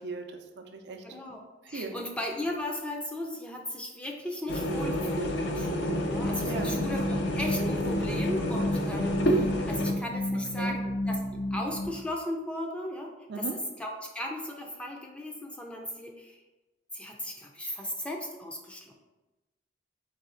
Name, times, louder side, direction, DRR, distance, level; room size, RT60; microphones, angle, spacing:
voice 1, 0.0-1.0 1.7-2.0 6.4-6.8 10.6-10.8 13.3-13.6, right 4 dB, 65° right, 4 dB, 0.5 m, -38 dB
voice 2, 1.0-16.4 16.9-18.9, left 1 dB, 5° left, 1 dB, 0.4 m, -36 dB
sound 1, 4.5-9.9, equal, 65° left, 0.6 m, -29 dB
sound 2, 5.9-11.9, left 1 dB, 85° left, 1.3 m, -32 dB
4.1 x 3.3 x 3.7 m, 1.1 s
head